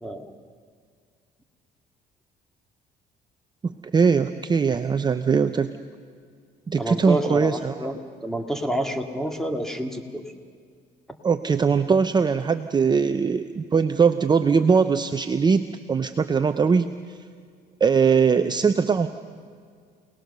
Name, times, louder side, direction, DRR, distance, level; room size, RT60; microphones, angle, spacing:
voice 1, 0.0-0.3 6.8-7.9 8.2-10.2, right 1 dB, 5° left, 5 dB, 2.2 m, -28 dB
voice 2, 3.6-5.7 6.7-7.9 11.2-16.9 17.8-19.1, right 5 dB, 25° right, 9 dB, 0.7 m, -21 dB
28.0 x 19.5 x 6.8 m, 2.1 s
cardioid pair, 110°, 17 cm